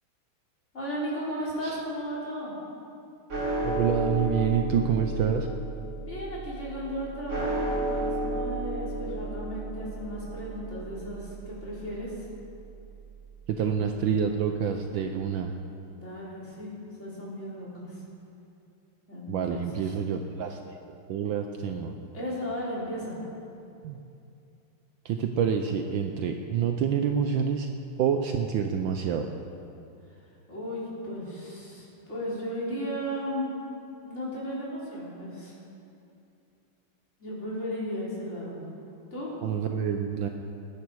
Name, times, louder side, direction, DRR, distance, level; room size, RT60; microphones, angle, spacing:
voice 1, 0.7-2.6 6.0-12.1 15.9-16.7 17.0-18.0 19.1-19.7 22.1-23.2 30.5-33.5 34.0-35.6 37.2-38.6 39.1-39.3, equal, 30° left, -7 dB, 4.1 m, -35 dB
sound 1, 3.3-13.7, right 1 dB, 35° right, 2.3 m, -33 dB
voice 2, 3.6-5.5 13.5-15.5 19.3-20.8 21.1-21.9 23.8-24.0 25.0-27.7 28.0-29.3 39.4-40.3, right 7 dB, 70° right, 5 dB, 1.3 m, -27 dB
19.5 x 10.5 x 4.7 m, 2.6 s
omnidirectional pair, 2.4 m